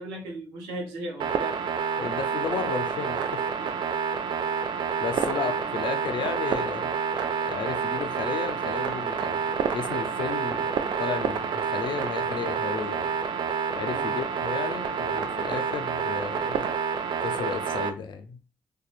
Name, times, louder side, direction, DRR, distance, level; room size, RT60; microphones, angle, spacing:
voice 1, 0.0-1.6 3.6-3.7 5.2-5.7 13.8-14.2, right 1 dB, 90° right, 0.7 m, -37 dB
sound 1, 1.2-17.9, right 6 dB, 65° right, 0.4 m, -28 dB
voice 2, 2.0-3.4 5.0-6.9 7.4-9.4 9.7-13.1 13.8-16.7 17.2-18.4, left 6 dB, 70° left, 0.5 m, -33 dB
2.7 x 2.2 x 2.4 m
hypercardioid pair, 40°, 8 cm